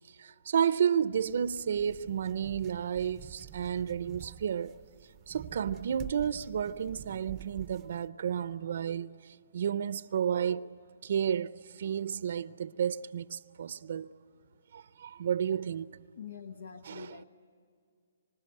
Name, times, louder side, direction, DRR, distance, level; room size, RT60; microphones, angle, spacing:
voice 1, 0.2-4.7 5.3-10.7 11.0-14.1 14.7-15.9 16.8-17.2, right 8 dB, 60° right, 0.6 m, -32 dB
sound 1, 1.1-8.1, right 13 dB, 20° right, 0.6 m, -48 dB
voice 2, 16.2-17.2, left 6 dB, 80° left, 1.2 m, -45 dB
25.5 x 25.0 x 7.9 m
hypercardioid pair, 155°, 0 cm